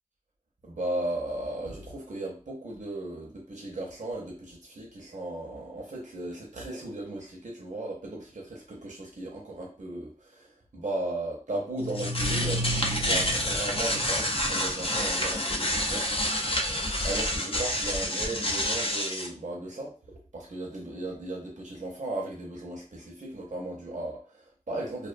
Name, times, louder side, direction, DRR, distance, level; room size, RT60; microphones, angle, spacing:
voice 1, 0.6-16.2 17.0-19.9 20.3-25.1, right 2 dB, 65° right, -3 dB, 0.6 m, -36 dB
sound 1, 11.7-19.3, left 1 dB, 45° left, 0.4 m, -28 dB
2.4 x 2.1 x 2.4 m, 0.38 s
wide cardioid pair, 50°, 13 cm